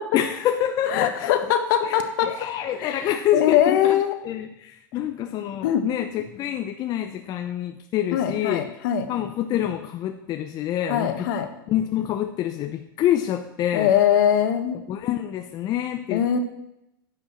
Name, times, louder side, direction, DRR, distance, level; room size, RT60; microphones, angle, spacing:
voice 1, 0.1-1.4 1.8-4.0 4.2-8.7 9.1-11.3 11.7-13.9 14.9-16.4, left 11 dB, 35° left, 6 dB, 0.7 m, -27 dB
voice 2, 0.9-2.3 2.8-4.1 5.6-5.9 8.1-9.1 10.9-11.5 13.7-14.8 16.1-16.4, left 10 dB, 60° left, 7 dB, 1.5 m, -22 dB
10.0 x 5.4 x 7.6 m, 0.84 s
hypercardioid pair, 115°, 12 cm